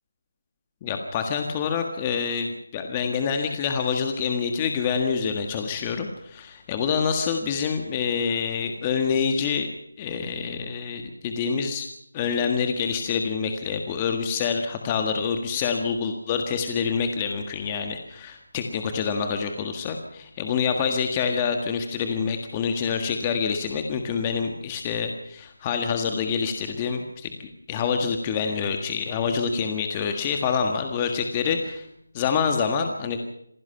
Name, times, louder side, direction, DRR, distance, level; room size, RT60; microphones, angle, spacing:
voice 1, 0.8-9.7 10.0-11.9 12.1-31.9 32.1-33.3, left 6 dB, 15° left, 5 dB, 1.6 m, -26 dB
27.5 x 16.5 x 5.8 m, 0.74 s
figure-of-eight pair, 170°, 0 cm